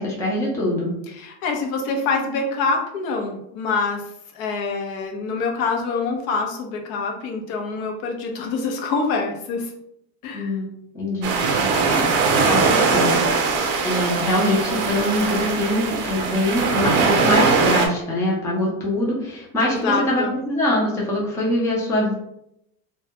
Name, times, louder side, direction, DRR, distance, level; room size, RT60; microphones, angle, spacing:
voice 1, 0.0-0.9 10.3-10.7 10.9-12.2 12.5-13.3 13.8-22.1, left 1 dB, 10° left, -3 dB, 0.3 m, -23 dB
voice 2, 1.1-9.7 10.2-10.5 19.7-20.3, left 4 dB, 85° left, 2 dB, 0.7 m, -25 dB
sound 1, 11.2-17.9, right 4 dB, 50° right, 0.5 m, -20 dB
2.2 x 2.1 x 2.8 m, 0.79 s
cardioid pair, 145°, 40 cm